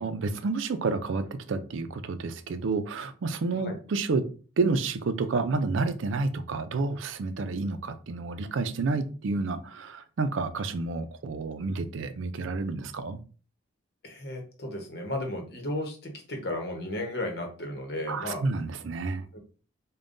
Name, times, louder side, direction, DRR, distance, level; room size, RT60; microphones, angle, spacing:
voice 1, 0.0-4.2 4.6-13.2 18.1-19.2, right 3 dB, 80° right, 0.4 m, -30 dB
voice 2, 14.0-18.4 19.2-19.4, left 1 dB, 55° left, 0.9 m, -34 dB
5.2 x 2.2 x 2.5 m
head